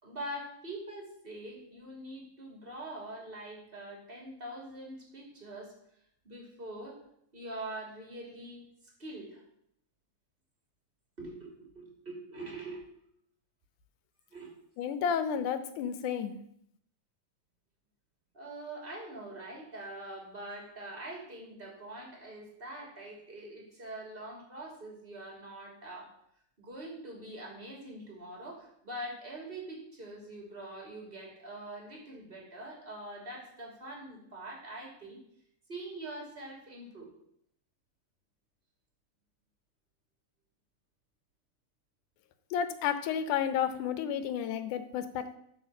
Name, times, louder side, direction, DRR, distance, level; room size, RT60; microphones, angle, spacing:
voice 1, 0.0-5.7 6.2-7.0 7.3-9.4 11.2-12.8 14.3-14.5 18.3-26.1 26.6-35.2 35.7-37.1, right 1 dB, 20° right, -1 dB, 2.6 m, -44 dB
voice 2, 14.8-16.4 42.5-45.4, left 8 dB, 80° left, 10 dB, 2.3 m, -31 dB
10.0 x 5.1 x 7.2 m, 0.72 s
omnidirectional pair, 3.7 m